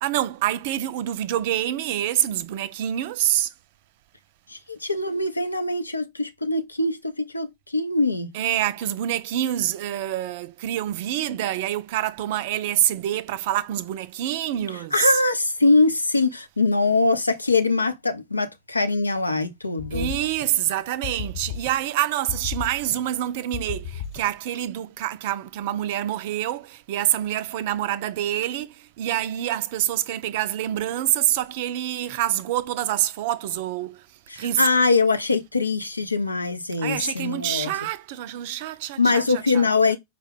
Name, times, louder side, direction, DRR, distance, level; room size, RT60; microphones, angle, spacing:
voice 1, 0.0-3.5 8.3-15.2 19.9-34.1 34.4-34.7 36.8-39.7, right 12 dB, 50° right, 0.4 m, -26 dB
voice 2, 4.5-8.3 14.9-20.1 34.3-37.7 39.0-40.0, left 3 dB, 80° left, 0.5 m, -22 dB
sound 1, 19.8-20.7 21.0-22.0 22.3-23.2 23.5-24.5, left 7 dB, 40° left, 0.8 m, -34 dB
4.8 x 2.2 x 3.4 m
figure-of-eight pair, 90°, 0 cm